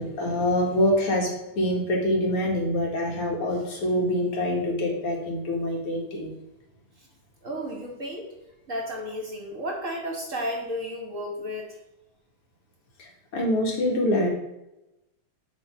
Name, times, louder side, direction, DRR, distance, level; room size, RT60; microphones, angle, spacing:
voice 1, 0.0-6.3 13.0-14.3, left 1 dB, 80° left, -1 dB, 2.7 m, -25 dB
voice 2, 7.4-8.3 8.7-11.8, equal, 45° right, 1 dB, 1.2 m, -33 dB
7.9 x 4.2 x 5.9 m, 0.93 s
omnidirectional pair, 2.4 m